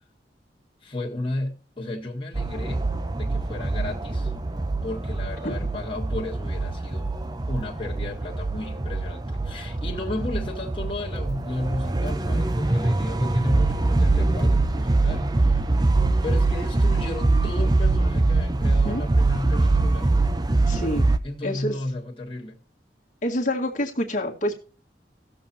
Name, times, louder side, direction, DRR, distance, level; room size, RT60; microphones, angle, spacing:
voice 1, 0.8-2.9 3.2-4.3 4.8-7.1 7.5-15.6 16.2-20.1 21.2-22.6, left 2 dB, 30° left, 1.8 m, -34 dB
sound 1, 2.3-21.2, right 2 dB, 25° right, 0.7 m, -23 dB
voice 2, 20.7-21.1 21.4-21.8 23.2-24.6, left 1 dB, 45° left, 1.8 m, -27 dB
18.0 x 7.0 x 2.8 m
head